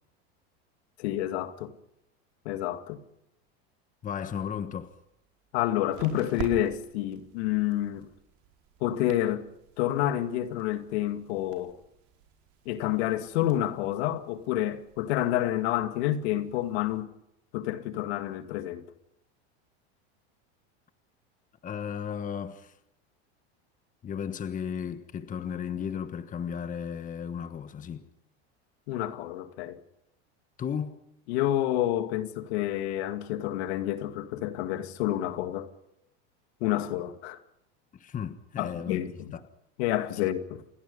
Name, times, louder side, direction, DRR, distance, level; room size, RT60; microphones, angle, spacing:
voice 1, 1.0-1.7 2.5-3.0 5.5-8.1 8.8-9.4 9.8-11.8 12.7-17.1 17.5-18.8 28.9-29.8 31.3-35.7 36.6-37.4 38.6-39.4 39.8-40.6, left 13 dB, 75° left, 2.3 m, -29 dB
voice 2, 4.0-5.0 21.6-22.8 24.0-28.1 30.6-31.0 37.9-39.0 39.3-39.4, left 7 dB, 25° left, 1.4 m, -34 dB
sound 1, 4.6-17.0, right 8 dB, 55° right, 5.1 m, -48 dB
28.5 x 21.5 x 5.5 m
supercardioid pair, 130°, 33 cm